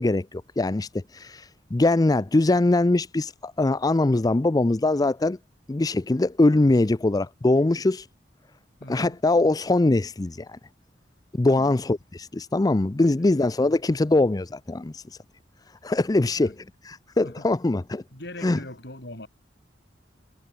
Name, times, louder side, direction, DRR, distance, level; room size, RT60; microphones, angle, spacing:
voice 1, 0.0-5.4 5.7-8.1 8.9-10.6 11.4-15.0 15.8-16.5 16.8-18.0 18.4-18.6, left 2 dB, 20° left, 0.5 m, -22 dB
voice 2, 8.8-9.2 11.5-11.8 12.9-13.3 13.6-13.8 16.2-16.6 17.2-17.5 18.1-19.3, left 1 dB, 65° left, 6.5 m, -41 dB
head